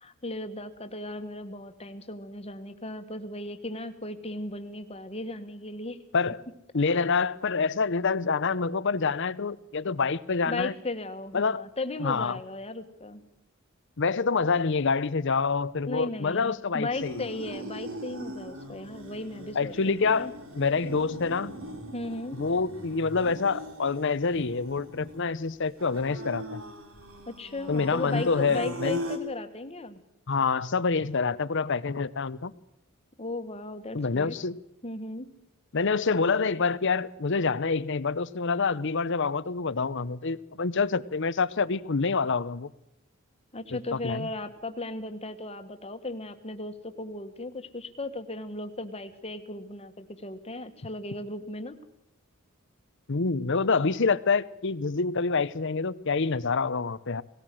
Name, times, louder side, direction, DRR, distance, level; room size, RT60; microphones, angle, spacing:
voice 1, 0.0-6.0 10.4-13.2 15.8-20.3 21.9-22.4 27.3-30.0 33.2-34.3 34.8-35.3 43.5-51.8, left 2 dB, 30° left, 8 dB, 1.6 m, -36 dB
voice 2, 6.7-10.7 11.3-11.6 12.0-12.4 14.0-17.3 19.6-20.3 20.6-21.6 22.3-26.6 27.7-29.0 30.3-32.5 33.9-34.6 35.7-42.7 43.7-44.3 53.1-57.2, left 4 dB, 60° left, 17 dB, 0.8 m, -27 dB
sound 1, 16.9-29.2, right 1 dB, 70° right, 3.4 m, -40 dB
19.0 x 18.0 x 7.7 m, 0.83 s
head